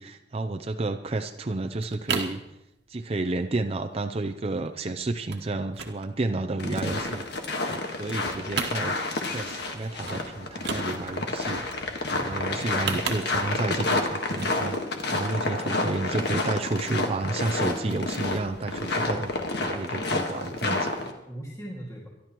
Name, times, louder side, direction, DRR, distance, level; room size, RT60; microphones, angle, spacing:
voice 1, 0.0-2.4 2.9-7.2 7.7-8.9 9.2-11.6 12.1-14.8 15.1-19.3 19.6-20.8, right 2 dB, 30° right, 6 dB, 0.5 m, -31 dB
sound 1, 1.2-1.3 1.6-2.4 2.8-3.1 3.5-3.6 3.8-4.0 4.3-4.8 5.3-5.5 5.7-7.0 7.4-8.2 8.4-9.3 9.6-9.7 10.0-10.2 10.5-11.3 12.5-13.6 14.3-14.6 15.0-15.1, right 5 dB, 60° right, 1.3 m, -34 dB
sound 2, 6.6-21.1, left 2 dB, 60° left, 1.6 m, -30 dB
voice 2, 12.2-12.7 20.7-22.1, right 1 dB, 15° left, -4 dB, 2.1 m, -41 dB
24.5 x 12.0 x 3.0 m, 0.92 s
head